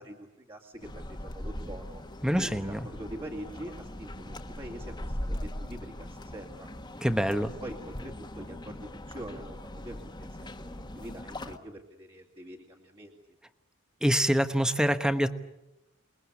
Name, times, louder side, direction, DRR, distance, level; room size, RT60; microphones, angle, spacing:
voice 1, 0.0-2.0 2.4-6.7 7.6-13.2, right 1 dB, 25° right, -3 dB, 2.3 m, -44 dB
sound 1, 0.8-11.6, left 1 dB, 20° left, 1.5 m, -40 dB
voice 2, 2.2-2.8 7.0-7.5 14.0-15.3, equal, 5° right, 9 dB, 1.2 m, -25 dB
28.5 x 21.0 x 8.5 m, 0.95 s
head